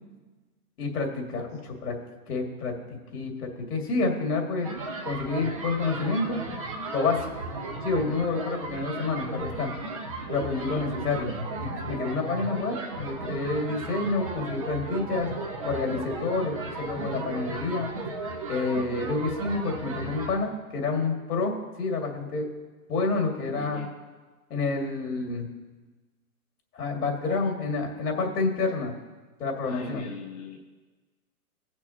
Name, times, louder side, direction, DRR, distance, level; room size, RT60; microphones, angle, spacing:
voice 1, 0.8-1.9 2.3-4.7 5.0-6.4 6.9-7.3 7.8-9.7 10.3-11.3 11.6-15.3 15.6-17.9 18.5-22.5 22.9-23.8 24.5-25.5 26.7-28.9 29.4-30.0, left 3 dB, 85° left, 1 dB, 2.4 m, -28 dB
sound 1, 4.6-20.4, right 2 dB, 25° right, 0.6 m, -35 dB
voice 2, 23.5-23.9 29.7-30.6, left 4 dB, 25° left, -2 dB, 0.9 m, -40 dB
18.0 x 6.3 x 2.9 m, 1.3 s
hypercardioid pair, 170°, 45 cm